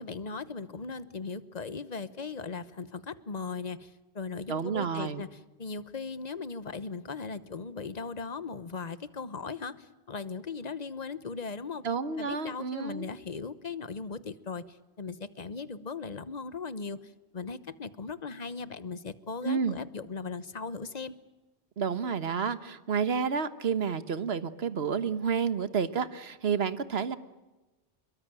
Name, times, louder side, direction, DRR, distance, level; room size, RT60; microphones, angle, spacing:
voice 1, 0.0-11.9 12.2-21.1, left 4 dB, 40° left, 14 dB, 1.1 m, -38 dB
voice 2, 4.5-5.2 11.8-13.1 19.4-19.8 21.8-27.2, right 6 dB, 65° right, 13 dB, 1.5 m, -30 dB
27.0 x 22.5 x 9.0 m, 1.1 s
omnidirectional pair, 1.1 m